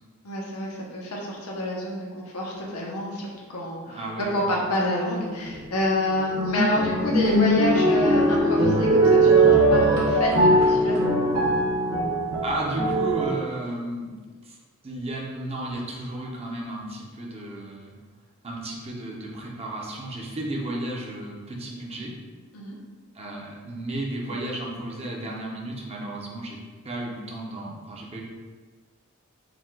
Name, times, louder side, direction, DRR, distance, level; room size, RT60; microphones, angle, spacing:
voice 1, 0.2-11.0 22.5-22.7, left 1 dB, 75° left, -2 dB, 0.9 m, -28 dB
voice 2, 3.9-4.5 12.4-14.6 14.8-18.0 18.4-22.1 23.1-26.6 26.8-28.2, right 1 dB, 30° right, -3 dB, 0.7 m, -33 dB
sound 1, 5.2-5.6 6.1-13.3, right 1 dB, 70° right, 0.9 m, -20 dB
4.8 x 2.3 x 3.7 m, 1.4 s
head